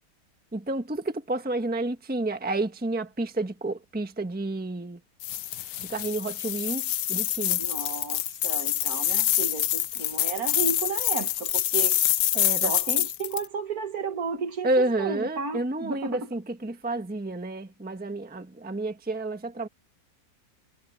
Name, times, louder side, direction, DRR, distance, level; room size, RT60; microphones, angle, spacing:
voice 1, 0.5-5.0 5.8-7.6 12.3-12.7 14.6-19.7, right 2 dB, 5° right, 1.1 m, -30 dB
sound 1, 5.2-13.5, left 12 dB, 75° left, 1.3 m, -26 dB
voice 2, 7.6-12.0 12.6-16.2, right 5 dB, 55° right, 1.9 m, -33 dB
omnidirectional pair, 1.9 m